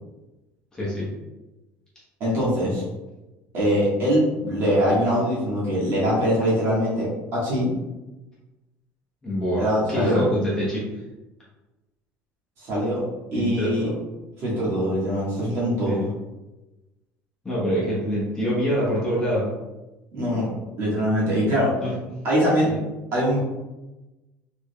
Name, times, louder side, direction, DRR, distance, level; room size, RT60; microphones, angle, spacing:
voice 1, 0.7-1.1 9.2-9.6 9.9-10.8 13.3-13.9 15.8-16.1 17.4-19.5 21.8-21.9 22.6-22.8, equal, 15° left, -8 dB, 0.9 m, -25 dB
voice 2, 2.2-2.8 3.5-7.7 9.5-10.3 12.6-13.0 13.3-13.9 14.4-16.0 20.1-20.5 20.8-21.7 22.2-22.7 23.1-23.4, equal, 45° right, -7 dB, 1.4 m, -22 dB
3.4 x 3.4 x 2.2 m, 1.1 s
cardioid pair, 170°, 6 cm